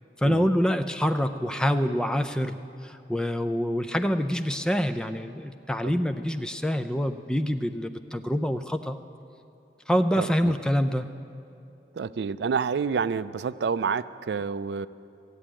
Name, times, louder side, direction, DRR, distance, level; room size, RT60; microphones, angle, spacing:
voice 1, 0.2-9.0 9.9-11.1, equal, 5° left, 8 dB, 0.4 m, -26 dB
voice 2, 10.1-10.5 11.9-14.9, right 5 dB, 70° right, 15 dB, 0.4 m, -29 dB
14.0 x 8.4 x 8.8 m, 2.7 s
head